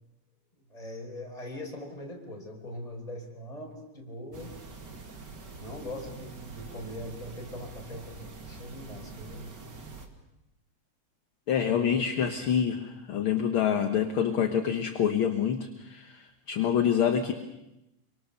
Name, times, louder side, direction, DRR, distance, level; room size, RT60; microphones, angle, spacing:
voice 1, 0.7-4.5 5.6-9.6 11.6-11.9, left 1 dB, 10° left, 0 dB, 4.7 m, -41 dB
sound 1, 4.3-10.1, right 3 dB, 40° right, 2.5 m, -45 dB
voice 2, 11.5-17.3, left 8 dB, 55° left, 6 dB, 1.7 m, -27 dB
26.5 x 24.5 x 6.8 m, 0.92 s
omnidirectional pair, 3.3 m